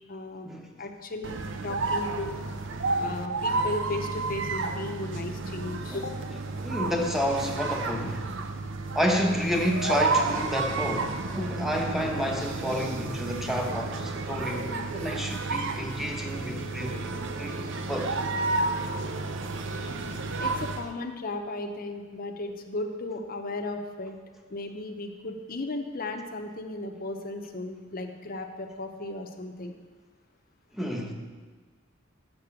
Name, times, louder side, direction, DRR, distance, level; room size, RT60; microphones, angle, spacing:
voice 1, 0.1-0.5 0.8-2.4 3.0-6.2 20.4-24.2 24.5-29.7, left 2 dB, 45° left, 5 dB, 0.8 m, -35 dB
sound 1, 1.2-20.9, right 3 dB, 65° right, 0.6 m, -31 dB
voice 2, 6.6-8.3 8.9-17.0 17.4-17.6 17.9-18.2 19.5-19.6 30.7-31.1, equal, ahead, 1 dB, 0.9 m, -30 dB
6.8 x 6.3 x 7.0 m, 1.5 s
head